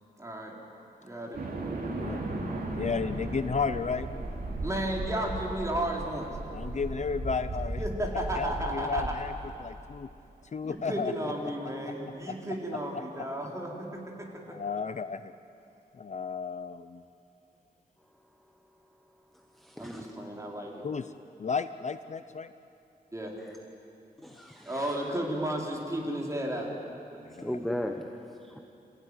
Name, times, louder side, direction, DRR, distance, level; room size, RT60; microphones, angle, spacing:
voice 1, 0.2-0.5 1.0-1.4 4.6-6.4 7.8-9.2 10.6-14.6 19.8-20.8 23.1-23.3 24.7-26.7, right 1 dB, 20° right, -1 dB, 4.0 m, -33 dB
sound 1, 1.3-9.9, right 2 dB, 65° right, 3.5 m, -36 dB
sound 2, 1.9-7.9 8.4-9.7, right 3 dB, 65° left, 6.6 m, -53 dB
voice 2, 2.8-4.1 6.5-7.8 8.1-9.3 9.6-10.1 10.5-11.3 12.3-12.4 14.5-15.3 15.9-17.0 20.8-21.1 21.4-22.5 27.2-27.5, left 5 dB, 45° left, 12 dB, 0.6 m, -33 dB
voice 3, 19.3-20.1 23.4-23.5 24.2-25.0 27.1-28.6, left 1 dB, ahead, 4 dB, 1.2 m, -38 dB
27.5 x 16.0 x 9.8 m, 2.7 s
wide cardioid pair, 120°, 17 cm